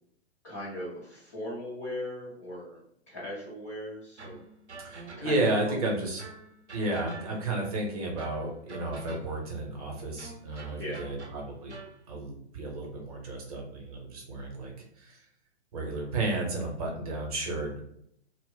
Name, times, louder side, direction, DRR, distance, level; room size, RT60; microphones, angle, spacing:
voice 1, 0.4-2.8 3.1-4.4 5.2-5.4 5.7-5.9 10.7-11.0, left 1 dB, 15° left, -9 dB, 0.4 m, -39 dB
sound 1, 4.2-5.6 6.2-7.6 8.2-9.5 10.2-12.0, right 3 dB, 90° right, 0.5 m, -47 dB
voice 2, 4.8-6.2 6.7-11.7 12.1-15.2 15.7-17.8, right 2 dB, 35° right, 0 dB, 0.7 m, -32 dB
2.2 x 2.1 x 3.5 m, 0.71 s
figure-of-eight pair, 120°, 33 cm